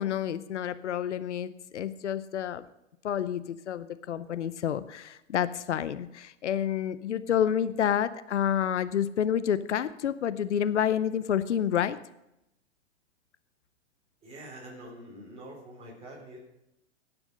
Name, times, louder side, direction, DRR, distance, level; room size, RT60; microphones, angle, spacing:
voice 1, 0.0-2.6 3.0-12.0, left 9 dB, 80° left, 14 dB, 0.7 m, -29 dB
voice 2, 14.2-16.4, right 1 dB, 20° right, -4 dB, 4.2 m, -45 dB
17.5 x 6.2 x 6.2 m, 0.87 s
hypercardioid pair, 115°, 35 cm